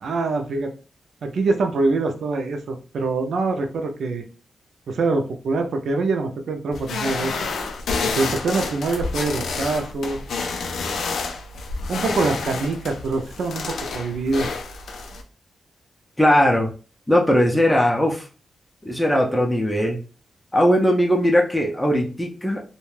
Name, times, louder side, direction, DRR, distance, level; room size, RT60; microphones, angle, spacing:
voice 1, 0.0-0.7 1.2-4.2 4.9-7.3 8.1-10.2 11.9-14.5, right 3 dB, 70° right, 5 dB, 0.4 m, -24 dB
sound 1, 6.7-15.2, left 4 dB, 80° left, 0.4 m, -29 dB
voice 2, 16.2-16.7 17.1-18.2 18.8-20.0 20.5-22.6, equal, 5° left, 0 dB, 0.4 m, -19 dB
2.4 x 2.2 x 3.2 m, 0.36 s
wide cardioid pair, 130°, 0 cm